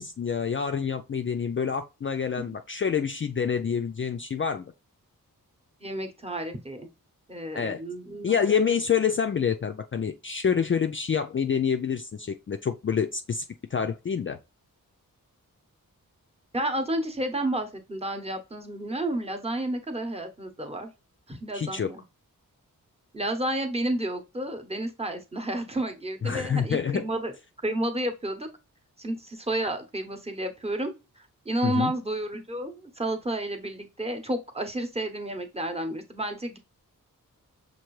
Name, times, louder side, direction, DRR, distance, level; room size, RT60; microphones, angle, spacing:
voice 1, 0.0-4.6 7.5-7.8 8.2-13.4 13.7-14.4 21.5-21.9 26.2-27.0 31.6-31.9, left 7 dB, 35° left, 0.4 m, -27 dB
voice 2, 5.8-6.9 7.3-8.4 16.5-20.9 21.3-22.0 23.1-27.3 27.6-28.5 29.0-30.9 31.4-36.6, right 1 dB, 15° right, 0.9 m, -31 dB
5.7 x 2.6 x 3.1 m
cardioid pair, 55°, 36 cm